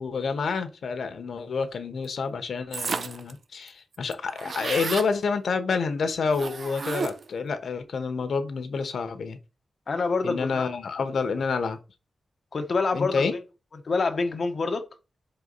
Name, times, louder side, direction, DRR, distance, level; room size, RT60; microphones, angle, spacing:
voice 1, 0.0-9.4 10.2-11.8 12.9-13.3, left 5 dB, 65° left, 1.2 m, -28 dB
sound 1, 2.7-3.3 3.7-3.8 3.9-5.1 6.3-7.4, right 5 dB, 45° right, 0.4 m, -32 dB
voice 2, 9.9-10.7 12.5-13.3 13.8-14.9, left 4 dB, 45° left, 1.1 m, -26 dB
6.0 x 4.5 x 5.5 m
wide cardioid pair, 155°, 0 cm